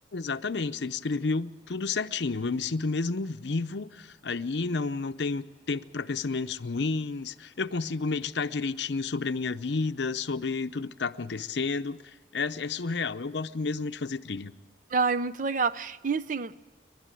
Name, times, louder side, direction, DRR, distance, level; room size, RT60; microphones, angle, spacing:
voice 1, 0.1-14.5, left 4 dB, 70° left, 0.7 m, -31 dB
voice 2, 14.9-16.6, right 4 dB, 45° right, 0.6 m, -28 dB
28.0 x 12.0 x 9.0 m
head